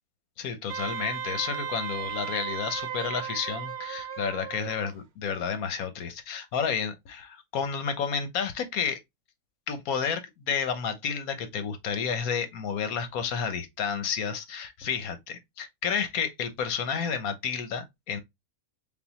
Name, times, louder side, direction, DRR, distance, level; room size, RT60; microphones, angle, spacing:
voice 1, 0.4-9.0 9.7-18.2, left 6 dB, 80° left, 1.3 m, -31 dB
Wind instrument woodwind instrument, 0.7-4.9, right 8 dB, 55° right, 0.9 m, -35 dB
4.1 x 3.6 x 2.9 m
omnidirectional pair, 1.5 m